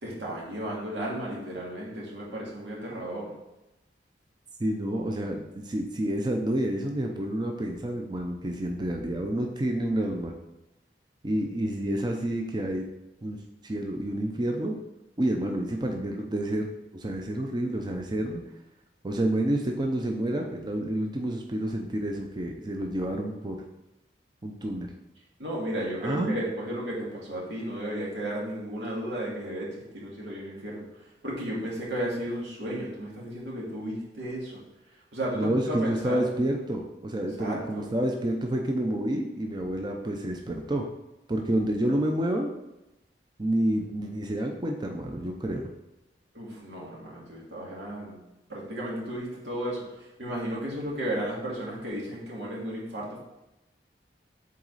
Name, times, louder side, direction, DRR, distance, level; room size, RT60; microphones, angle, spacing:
voice 1, 0.0-3.3 25.4-34.6 35.1-36.3 37.4-37.9 46.3-48.2 48.5-53.2, right 1 dB, 85° right, -4 dB, 2.3 m, -34 dB
voice 2, 4.6-10.3 11.2-12.9 13.2-13.4 13.6-14.8 15.2-16.7 16.9-18.4 19.0-23.6 24.4-24.9 26.0-26.4 35.3-40.8 41.3-42.5 43.4-45.7, right 1 dB, 25° right, 2 dB, 0.5 m, -29 dB
7.5 x 4.1 x 4.0 m, 0.95 s
head